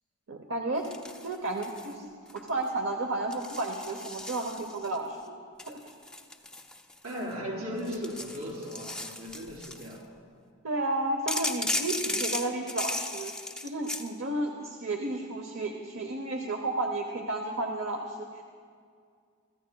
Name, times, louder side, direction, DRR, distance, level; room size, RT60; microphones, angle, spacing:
voice 1, 0.3-0.9 1.2-2.1 2.3-5.4 5.7-5.8 10.6-13.3 13.6-18.4, right 2 dB, 60° right, 2 dB, 0.9 m, -32 dB
sound 1, 0.8-1.9 2.3-2.7 3.3-5.0 5.6-7.3 7.8-9.9 11.3-14.1, left 2 dB, 5° left, 0.4 m, -36 dB
voice 2, 7.0-10.1, equal, 85° right, -3 dB, 4.1 m, -37 dB
24.0 x 14.0 x 2.3 m, 2.2 s
head